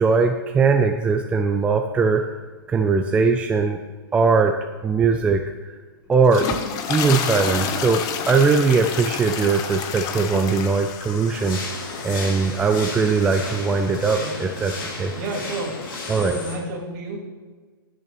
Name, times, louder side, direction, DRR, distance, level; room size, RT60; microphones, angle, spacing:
voice 1, 0.0-2.2 2.7-3.8 4.1-4.6 4.8-5.8 6.1-6.6 6.9-11.8 12.0-15.1 16.1-16.4, right 4 dB, 10° right, 4 dB, 0.4 m, -20 dB
sound 1, 6.1-14.5, left 6 dB, 30° left, 0.9 m, -30 dB
sound 2, 11.3-16.6, left 3 dB, 55° left, 2.5 m, -34 dB
voice 2, 15.2-15.7 16.1-17.2, right 3 dB, 40° right, 0 dB, 2.3 m, -31 dB
16.0 x 6.8 x 3.0 m, 1.4 s
hypercardioid pair, 135°, 13 cm